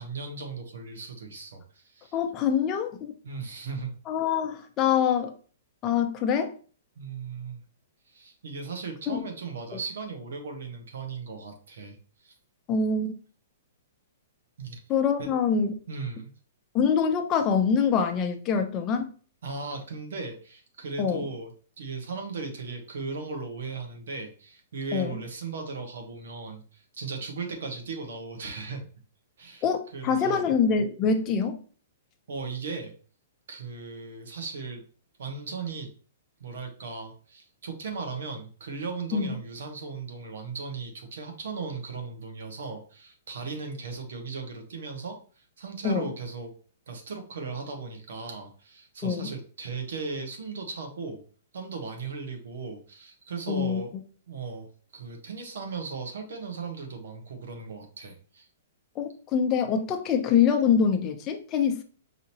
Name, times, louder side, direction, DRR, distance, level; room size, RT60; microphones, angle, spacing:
voice 1, 0.0-2.2 3.2-3.9 7.0-7.6 8.1-12.3 14.6-14.8 15.2-15.3 15.9-16.3 19.4-21.5 21.8-28.9 29.4-29.6 29.9-30.5 32.3-32.9 33.5-34.8 35.2-35.9 36.4-46.5 46.9-51.2 51.5-53.9 54.3-58.5, right 4 dB, 75° right, 1.2 m, -37 dB
voice 2, 2.1-3.1 4.1-5.3 5.8-6.5 9.1-9.2 12.7-13.1 14.9-15.7 16.7-19.1 21.0-21.2 24.9-25.2 29.6-31.6 39.1-39.4 45.8-46.1 49.0-49.3 53.5-53.8 59.0-61.8, left 6 dB, 25° left, 0.6 m, -25 dB
5.0 x 2.8 x 2.8 m
hypercardioid pair, 160°, 0 cm